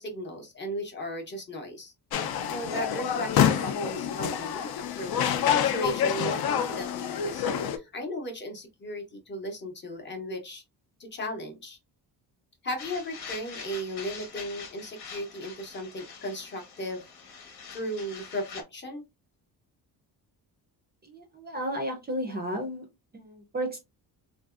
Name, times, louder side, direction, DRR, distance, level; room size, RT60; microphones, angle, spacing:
voice 1, 0.0-1.9 2.5-10.6 11.0-11.8 12.6-17.0 17.7-19.0, equal, 30° left, 0.6 m, -36 dB
sound 1, 2.1-7.8, left 8 dB, 70° left, 0.6 m, -27 dB
sound 2, 12.8-18.6, left 6 dB, 85° left, 1.2 m, -44 dB
voice 2, 21.0-22.9 23.1-23.8, equal, 25° right, 0.4 m, -33 dB
3.6 x 2.5 x 2.3 m
wide cardioid pair, 180°, 38 cm